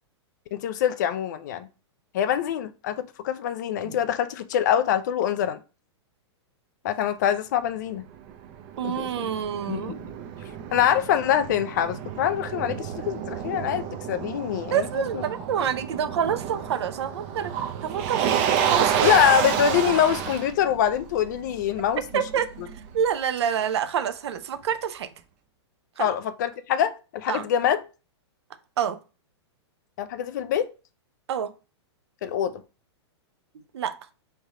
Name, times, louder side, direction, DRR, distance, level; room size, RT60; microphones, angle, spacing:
voice 1, 0.5-1.7 2.1-5.6 6.8-8.1 8.8-9.3 9.6-10.0 10.7-15.2 15.6-15.7 19.0-22.2 22.6-22.7 26.0-27.8 30.0-30.7 32.2-32.6, left 9 dB, 40° left, 0.4 m, -24 dB
Motor vehicle (road), 8.0-23.0, right 8 dB, 30° right, 0.5 m, -30 dB
voice 2, 8.8-10.0 14.7-17.5 17.8-18.4 18.7-19.2 22.1-22.5 22.9-25.1 26.0-26.1 27.3-27.4 28.8-29.0 31.3-31.5 33.7-33.9, right 8 dB, 70° right, 0.6 m, -27 dB
4.2 x 3.3 x 3.6 m
hypercardioid pair, 165°, 15 cm